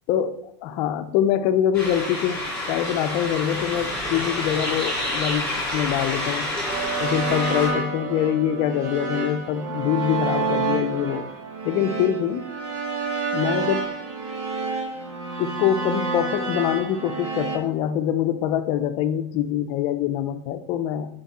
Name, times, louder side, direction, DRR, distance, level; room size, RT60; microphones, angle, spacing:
voice 1, 0.1-6.5 7.0-11.2 11.6-12.5 13.3-13.9 15.4-21.1, left 10 dB, 35° left, 7 dB, 0.6 m, -24 dB
sound 1, 1.7-7.7, left 1 dB, 5° left, 3.1 m, -28 dB
sound 2, 6.7-17.6, right 4 dB, 80° right, 1.9 m, -29 dB
9.6 x 5.2 x 4.2 m, 0.75 s
supercardioid pair, 170°, 15 cm